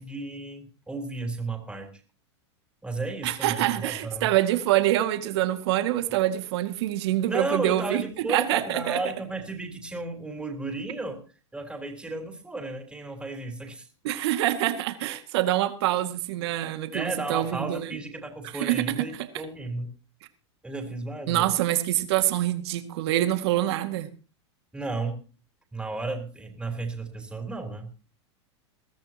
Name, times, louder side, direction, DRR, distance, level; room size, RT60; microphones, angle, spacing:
voice 1, 0.0-1.9 2.8-4.3 7.2-11.2 11.5-13.9 16.9-19.9 20.6-21.5 24.7-25.2 25.7-27.9, right 2 dB, 5° right, 3 dB, 3.7 m, -33 dB
voice 2, 3.2-8.0 8.3-9.0 14.0-17.9 18.5-19.0 21.3-24.1, right 14 dB, 65° right, 8 dB, 2.1 m, -25 dB
21.5 x 13.5 x 2.9 m, 0.35 s
hypercardioid pair, 125°, 15 cm